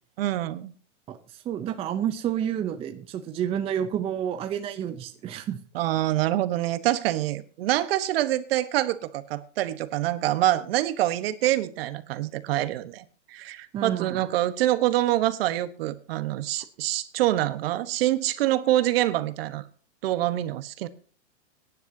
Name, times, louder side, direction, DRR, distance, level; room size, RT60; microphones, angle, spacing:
voice 1, 0.2-0.7 5.7-19.6 20.0-20.9, right 14 dB, 50° right, 1.2 m, -26 dB
voice 2, 1.1-5.6 13.7-14.2, right 9 dB, 15° right, 0.6 m, -30 dB
21.5 x 10.5 x 2.8 m
hypercardioid pair, 145°, 37 cm